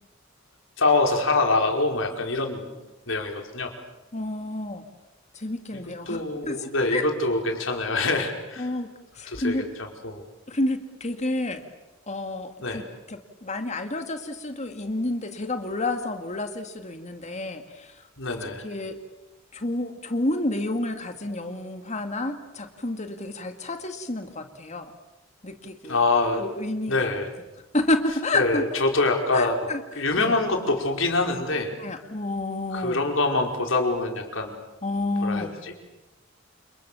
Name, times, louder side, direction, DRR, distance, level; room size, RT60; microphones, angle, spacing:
voice 1, 0.8-2.7 3.1-3.7 5.7-8.7 9.3-10.2 12.6-12.8 18.2-18.6 25.9-26.4 26.9-27.3 28.3-29.7 29.9-31.7 32.7-34.6 35.2-35.7, left 3 dB, 70° left, 2 dB, 5.0 m, -25 dB
voice 2, 4.1-4.8 5.3-7.1 8.6-8.9 9.1-9.7 10.5-11.6 12.1-18.0 18.6-19.0 19.5-24.9 25.4-26.0 26.4-27.1 27.7-28.8 29.3-30.3 31.8-33.0 34.8-35.5, left 2 dB, 35° left, 6 dB, 1.9 m, -30 dB
29.5 x 28.5 x 7.0 m, 1.0 s
head